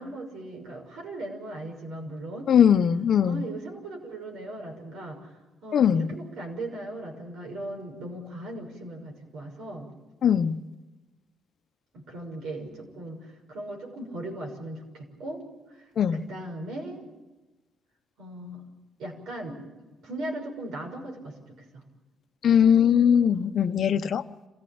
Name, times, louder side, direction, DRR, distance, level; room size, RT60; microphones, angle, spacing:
voice 1, 0.0-2.5 3.2-9.9 11.9-15.4 15.7-15.8 16.1-17.0 18.2-18.6 19.0-19.6 20.0-21.8, right 1 dB, 80° right, 1 dB, 6.3 m, -38 dB
voice 2, 2.5-3.4 5.7-6.1 10.2-10.6 16.0-16.3 22.4-24.2, left 8 dB, 60° left, 11 dB, 0.9 m, -20 dB
26.5 x 16.5 x 8.8 m, 1.1 s
cardioid pair, 90°, 0 cm